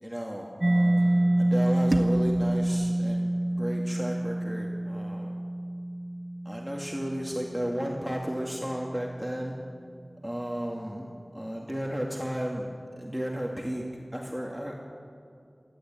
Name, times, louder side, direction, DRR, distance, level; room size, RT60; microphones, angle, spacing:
voice 1, 0.0-5.4 6.4-9.5 10.2-12.7 13.0-13.9 14.1-15.0, equal, 5° right, -1 dB, 2.3 m, -34 dB
Mallet percussion, 0.6-8.1, right 1 dB, 40° right, 0.4 m, -27 dB
Strum, 0.9-7.2, left 1 dB, 85° left, 3.3 m, -52 dB
sound 1, 1.9-4.8, right 2 dB, 65° right, 1.7 m, -37 dB
28.5 x 12.0 x 9.0 m, 2.4 s
wide cardioid pair, 50°, 0 cm